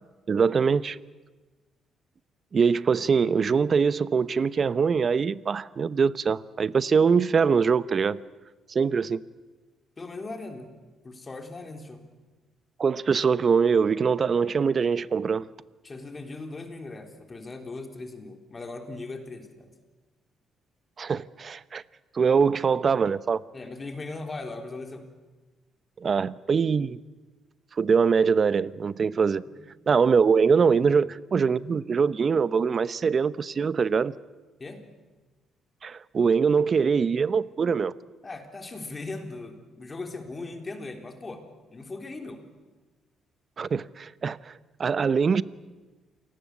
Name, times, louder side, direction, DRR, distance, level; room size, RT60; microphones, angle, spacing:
voice 1, 0.3-1.0 2.5-8.2 8.7-9.2 12.8-15.5 21.0-21.8 22.1-23.4 26.0-27.0 27.8-29.4 29.9-34.1 35.8-37.9 43.6-44.5 44.8-45.4, right 5 dB, 45° right, 17 dB, 0.8 m, -23 dB
voice 2, 10.0-10.7 11.0-12.1 15.8-19.7 23.5-25.1 29.6-29.7 30.8-30.9 34.6-34.8 38.2-41.5 41.7-42.4, left 3 dB, 30° left, 5 dB, 3.7 m, -39 dB
28.0 x 19.0 x 8.4 m, 1.3 s
cardioid pair, 90°, 0 cm